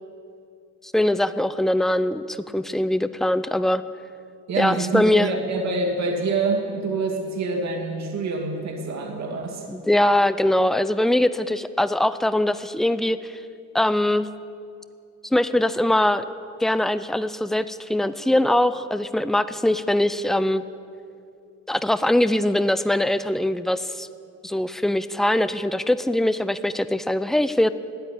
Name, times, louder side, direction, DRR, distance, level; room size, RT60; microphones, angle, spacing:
voice 1, 0.9-3.8 4.6-5.3 9.7-13.4 13.7-14.3 15.3-16.3 16.6-20.6 21.7-24.1 24.4-27.7, left 1 dB, ahead, 13 dB, 0.5 m, -22 dB
voice 2, 4.5-9.7, right 3 dB, 65° right, 1 dB, 2.2 m, -26 dB
13.5 x 8.9 x 9.8 m, 2.5 s
cardioid pair, 90°, 30 cm